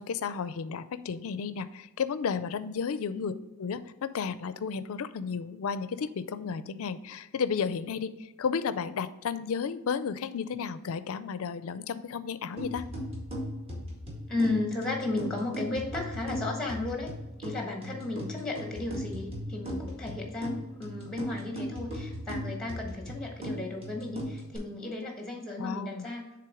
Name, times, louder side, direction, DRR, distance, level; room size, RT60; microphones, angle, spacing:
voice 1, 0.0-3.3 3.6-8.1 8.4-12.8 25.6-26.1, left 6 dB, 65° left, 13 dB, 0.4 m, -33 dB
sound 1, 12.6-24.6, equal, 25° right, 1.8 m, -38 dB
voice 2, 14.3-17.1 17.4-26.2, left 2 dB, 5° left, 1 dB, 1.1 m, -34 dB
7.6 x 3.5 x 4.9 m, 1.1 s
head